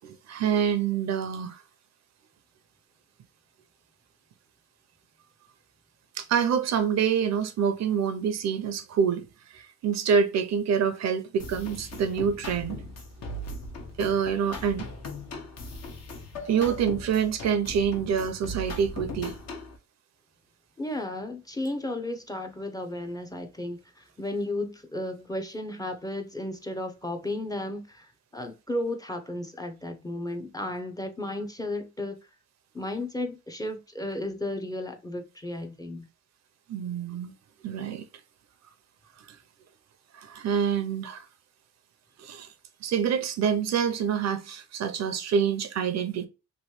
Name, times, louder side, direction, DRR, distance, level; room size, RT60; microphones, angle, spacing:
voice 1, 0.0-1.6 6.2-9.2 9.5-12.8 14.0-14.9 16.5-19.3 36.7-37.3 37.6-38.1 40.1-41.3 42.2-42.5 42.8-46.3, right 7 dB, 60° right, 0.6 m, -26 dB
sound 1, 11.4-19.8, left 1 dB, 55° left, 1.1 m, -39 dB
voice 2, 20.8-32.2 32.7-36.1, left 1 dB, 10° left, 0.6 m, -34 dB
3.1 x 2.6 x 3.0 m
cardioid pair, 90°, 30 cm